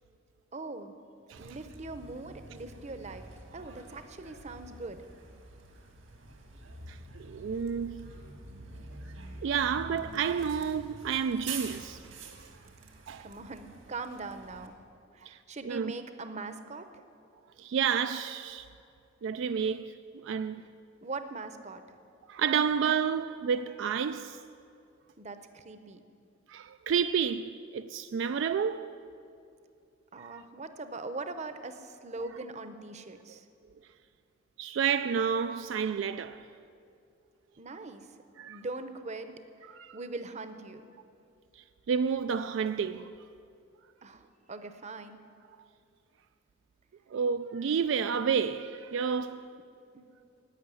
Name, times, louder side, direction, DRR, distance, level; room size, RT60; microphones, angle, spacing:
voice 1, 0.5-1.0 1.4-3.2 3.5-5.0 13.2-14.7 15.1-16.9 21.0-21.8 25.2-26.0 30.1-33.5 37.6-38.1 38.5-39.3 39.6-40.8 44.0-45.2 49.9-50.0, right 3 dB, 35° right, 0.7 m, -41 dB
Bus, 1.4-14.7, right 3 dB, 80° right, 1.7 m, -47 dB
voice 2, 6.9-8.1 9.4-12.1 12.4-12.5 13.1-13.3 15.2-15.4 15.6-15.9 17.6-18.7 19.2-20.0 20.2-20.6 22.3-24.4 26.5-29.0 30.2-30.4 34.6-36.4 38.4-38.6 39.7-40.0 41.5-43.1 47.1-49.5, right 7 dB, 65° right, 0.3 m, -30 dB
11.5 x 8.5 x 9.7 m
head